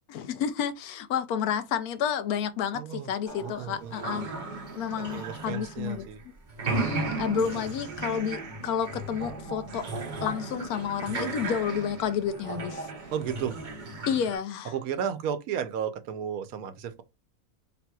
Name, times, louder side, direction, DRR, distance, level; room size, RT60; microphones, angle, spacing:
voice 1, 0.1-4.3 4.7-6.3 6.6-9.9 10.2-12.9 14.1-14.7, left 8 dB, 90° left, 1.1 m, -30 dB
voice 2, 2.7-3.1 3.4-3.9 5.0-6.2 13.1-13.6 14.6-17.0, right 8 dB, 75° right, 1.1 m, -33 dB
sound 1, 3.3-6.2 6.5-14.4, right 3 dB, 40° right, 0.7 m, -35 dB
4.3 x 3.7 x 2.3 m
omnidirectional pair, 1.5 m